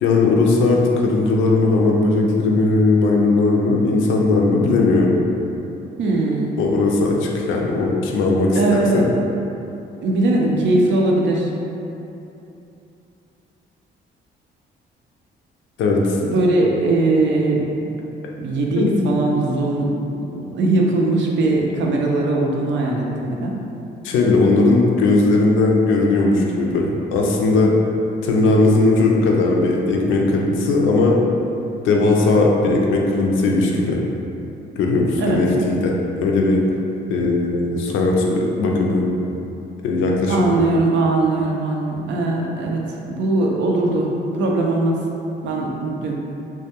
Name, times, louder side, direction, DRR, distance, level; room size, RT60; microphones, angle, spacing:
voice 1, 0.0-5.2 6.6-8.6 8.9-9.0 15.8-16.2 18.8-19.0 24.0-27.7 28.2-31.2 31.8-34.0 34.8-36.6 37.1-39.0 39.8-40.6, left 3 dB, 80° left, -1 dB, 0.4 m, -18 dB
voice 2, 6.0-6.5 8.5-9.1 10.0-11.5 16.2-17.6 18.4-19.9 20.3-23.6 35.2-35.4 40.3-44.1 44.3-45.0 45.4-46.2, right 2 dB, 70° right, -1 dB, 0.4 m, -20 dB
2.2 x 2.2 x 2.8 m, 2.8 s
cardioid pair, 90°, 20 cm